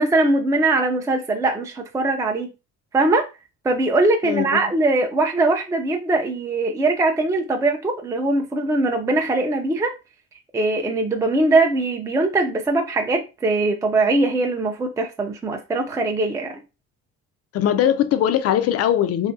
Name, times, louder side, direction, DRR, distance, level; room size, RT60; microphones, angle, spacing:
voice 1, 0.0-2.5 2.9-3.3 3.6-9.9 10.5-16.6, right 2 dB, 10° right, 0.4 m, -21 dB
voice 2, 4.2-4.6 17.5-19.3, left 10 dB, 50° left, 0.4 m, -20 dB
2.8 x 2.4 x 2.6 m
cardioid pair, 100°, 31 cm